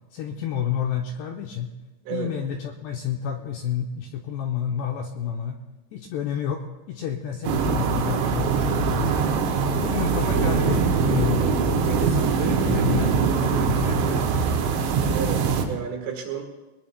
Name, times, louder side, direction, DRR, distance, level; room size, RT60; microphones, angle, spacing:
voice 1, 0.1-1.7 2.1-5.6 5.9-9.2 9.8-14.8, left 8 dB, 90° left, 2 dB, 2.4 m, -30 dB
sound 1, 7.4-15.6, right 5 dB, 90° right, 4.0 m, -22 dB
voice 2, 15.1-16.4, right 8 dB, 70° right, 2 dB, 3.7 m, -31 dB
22.0 x 19.5 x 2.2 m, 1.1 s
omnidirectional pair, 5.7 m